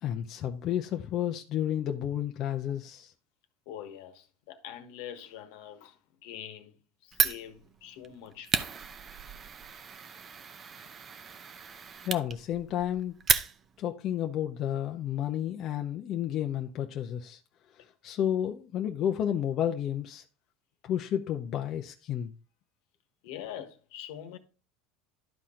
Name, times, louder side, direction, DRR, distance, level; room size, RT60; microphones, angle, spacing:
voice 1, 0.0-3.1 12.0-13.1 13.8-17.4 17.8-20.2 20.8-22.3, left 10 dB, 45° left, 0.8 m, -31 dB
voice 2, 3.6-6.8 7.0-8.5 23.2-24.4, left 10 dB, 75° left, 1.3 m, -44 dB
Fire, 7.1-13.9, right 6 dB, 30° right, 0.7 m, -33 dB
11.5 x 4.3 x 3.7 m
supercardioid pair, 115°, 0 cm